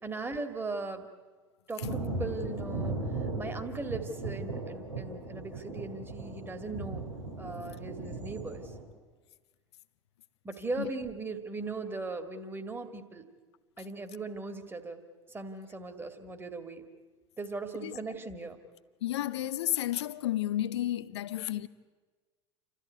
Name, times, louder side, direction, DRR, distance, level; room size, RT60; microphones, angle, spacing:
voice 1, 0.0-1.1 1.7-2.9 3.4-7.1 7.4-8.7 10.4-13.3 13.8-15.0 15.3-16.9 17.4-18.6, right 3 dB, 15° right, 2.2 m, -38 dB
Thunder, 1.8-8.8, right 2 dB, 90° right, 4.8 m, -37 dB
voice 2, 19.0-21.7, left 13 dB, 65° left, 0.9 m, -32 dB
29.0 x 13.5 x 9.4 m
figure-of-eight pair, 75°, 15 cm